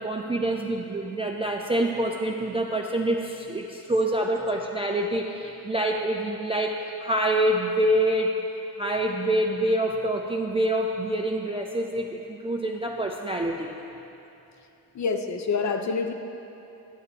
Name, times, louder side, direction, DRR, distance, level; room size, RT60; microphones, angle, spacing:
voice 1, 0.0-8.3 8.8-13.7, right 1 dB, 15° right, 1 dB, 0.3 m, -26 dB
voice 2, 14.9-16.1, left 5 dB, 35° left, 6 dB, 0.6 m, -27 dB
11.0 x 6.5 x 2.9 m, 2.9 s
supercardioid pair, 65°, 48 cm